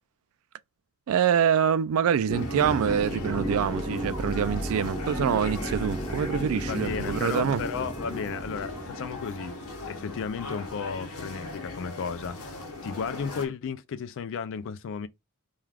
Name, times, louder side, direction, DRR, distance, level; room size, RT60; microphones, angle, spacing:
voice 1, 1.1-7.6, right 8 dB, 65° right, 0.3 m, -25 dB
sound 1, 2.3-13.5, left 2 dB, 75° left, 0.8 m, -39 dB
sound 2, 2.3-10.8, equal, 20° left, 0.7 m, -34 dB
voice 2, 6.7-9.6 9.8-12.5 12.8-15.1, left 6 dB, 60° left, 0.3 m, -34 dB
2.3 x 2.3 x 3.3 m
head